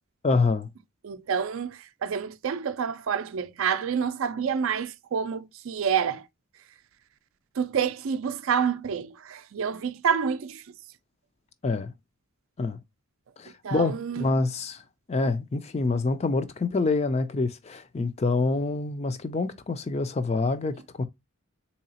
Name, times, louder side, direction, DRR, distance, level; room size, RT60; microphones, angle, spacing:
voice 1, 0.2-0.7 11.6-11.9 12.6-12.8 13.4-14.8 15.1-21.0, left 3 dB, 30° left, 0.4 m, -26 dB
voice 2, 1.0-6.3 7.6-10.6 13.6-14.3, right 7 dB, 65° right, 0.4 m, -28 dB
3.8 x 2.8 x 2.7 m
head